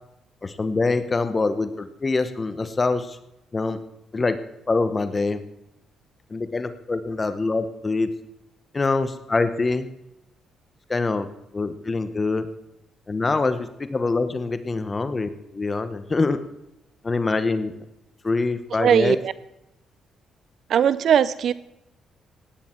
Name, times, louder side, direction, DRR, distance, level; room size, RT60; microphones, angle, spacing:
voice 1, 0.4-3.2 3.5-3.8 4.1-4.4 4.7-5.4 6.3-8.1 8.7-9.9 10.9-12.5 13.1-16.4 17.0-17.7 18.2-19.2, left 3 dB, 30° left, 11 dB, 1.1 m, -24 dB
voice 2, 18.8-19.3 20.7-21.5, right 8 dB, 65° right, 17 dB, 0.5 m, -19 dB
17.5 x 9.7 x 4.5 m, 0.87 s
cardioid pair, 90°, 0 cm